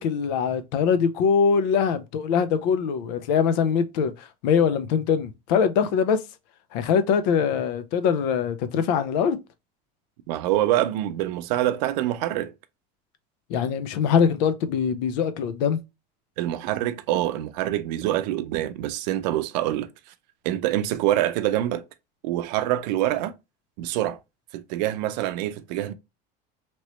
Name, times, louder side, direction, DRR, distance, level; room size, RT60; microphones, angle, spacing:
voice 1, 0.0-6.2 6.7-9.4 13.5-15.8, left 6 dB, 90° left, 0.6 m, -23 dB
voice 2, 10.3-12.5 16.4-19.9 20.4-21.8 22.2-23.3 23.8-24.2 24.5-25.9, right 13 dB, 90° right, 0.5 m, -25 dB
3.0 x 3.0 x 2.9 m
cardioid pair, 130°, 21 cm